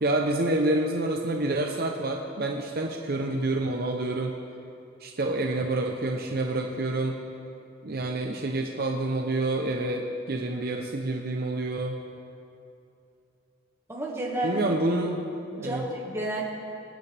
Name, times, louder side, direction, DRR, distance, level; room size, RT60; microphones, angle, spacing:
voice 1, 0.0-4.3 5.0-7.2 7.8-12.0 14.4-15.2 15.6-15.9, right 2 dB, 50° right, 2 dB, 0.8 m, -28 dB
voice 2, 13.9-14.6 15.5-16.4, right 1 dB, 15° right, -3 dB, 1.8 m, -31 dB
25.0 x 8.5 x 3.5 m, 2.6 s
head